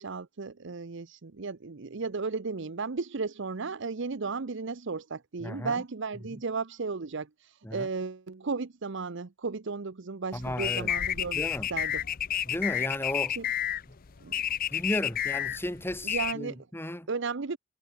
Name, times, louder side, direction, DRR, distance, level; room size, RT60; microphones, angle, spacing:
voice 1, 0.0-7.3 7.7-12.0 13.4-13.5 14.2-14.3 16.0-16.7 17.1-17.6, right 4 dB, 60° right, 0.8 m, -34 dB
voice 2, 5.4-5.8 6.3-6.4 7.6-7.9 10.3-10.9 11.3-11.7 12.5-13.4 14.7-17.1, left 1 dB, 10° left, 2.7 m, -34 dB
sound 1, 10.4-16.3, left 10 dB, 45° left, 0.5 m, -31 dB
head